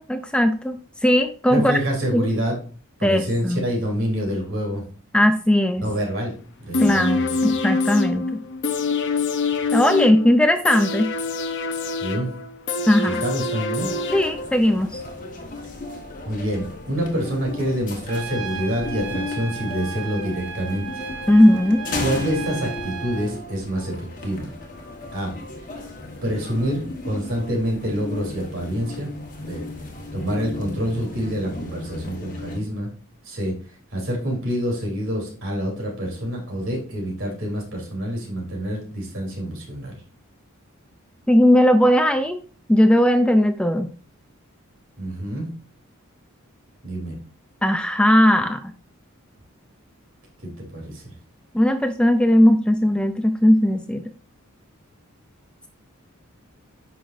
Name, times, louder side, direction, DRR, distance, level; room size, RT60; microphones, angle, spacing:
voice 1, 0.0-1.8 2.1-2.3 3.0-3.6 5.1-5.8 6.8-8.4 9.7-11.1 12.9-13.2 14.1-15.0 21.3-21.8 41.3-42.4 42.7-43.9 47.6-48.7 51.5-54.0, left 1 dB, 5° left, 8 dB, 0.3 m, -18 dB
voice 2, 1.5-2.6 3.0-4.8 5.8-6.3 6.6-7.6 12.0-12.3 13.1-13.9 16.3-20.9 22.0-24.5 25.1-25.3 26.2-29.1 29.4-29.6 30.1-32.9 33.3-33.5 33.9-40.0 45.0-45.5 46.8-47.2 50.4-51.1, equal, 60° right, 0 dB, 3.4 m, -27 dB
sound 1, 6.7-14.7 15.1-15.2, left 4 dB, 55° left, 0.8 m, -26 dB
sound 2, 13.8-32.6, left 2 dB, 35° left, 1.4 m, -35 dB
Trumpet, 18.1-23.3, right 7 dB, 75° right, 1.1 m, -35 dB
9.7 x 5.8 x 2.6 m, 0.39 s
head